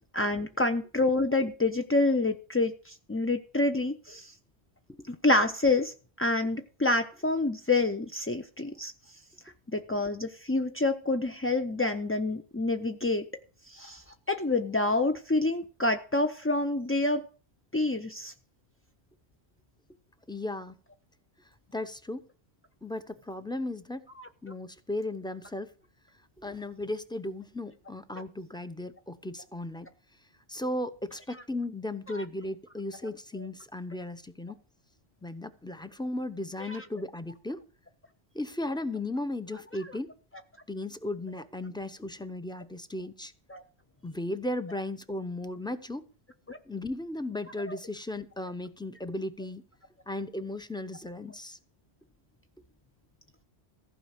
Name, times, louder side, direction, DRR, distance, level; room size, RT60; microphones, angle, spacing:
voice 1, 0.1-4.3 5.1-8.9 9.7-13.3 13.7-17.3 17.7-18.3 24.2-24.3 32.1-32.2 33.4-33.5 36.6-36.8 43.5-43.6 46.5-46.6 47.7-47.8, left 2 dB, 25° left, 6 dB, 0.3 m, -28 dB
voice 2, 20.3-20.7 21.7-22.2 22.8-24.0 24.4-25.7 26.4-29.9 30.5-34.6 35.2-37.6 38.3-40.1 40.7-43.3 44.0-46.0 46.7-49.6 50.1-51.6, left 1 dB, 5° left, 10 dB, 0.7 m, -36 dB
15.0 x 5.1 x 8.1 m, 0.39 s
omnidirectional pair, 1.1 m